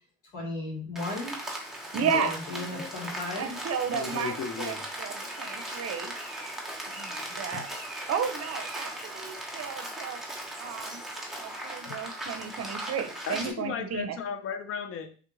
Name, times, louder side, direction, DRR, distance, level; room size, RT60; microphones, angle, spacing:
voice 1, 0.3-1.4 1.9-3.5, left 2 dB, 85° left, -3 dB, 1.5 m, -36 dB
Rain, 1.0-13.5, right 1 dB, ahead, 0.9 m, -38 dB
voice 2, 1.9-2.3 3.4-6.1 6.9-7.7 8.1-10.2 10.6-11.0 11.4-14.2, right 7 dB, 55° right, 8 dB, 0.6 m, -33 dB
voice 3, 3.9-4.9 7.3-7.6 11.8-12.0 13.3-15.2, left 6 dB, 45° left, 8 dB, 0.5 m, -35 dB
3.4 x 2.4 x 3.1 m, 0.39 s
cardioid pair, 90°, 30 cm